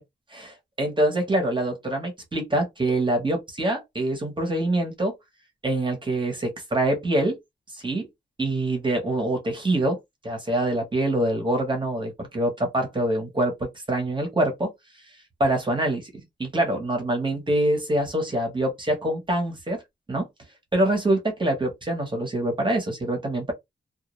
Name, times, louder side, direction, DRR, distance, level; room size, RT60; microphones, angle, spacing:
voice 1, 0.3-5.1 5.6-7.4 7.7-8.1 8.4-10.0 10.2-14.7 15.4-16.1 16.4-19.8 20.1-20.3 20.7-23.5, right 1 dB, 25° right, 0.8 m, -25 dB
2.2 x 2.1 x 2.9 m
wide cardioid pair, 160°, 19 cm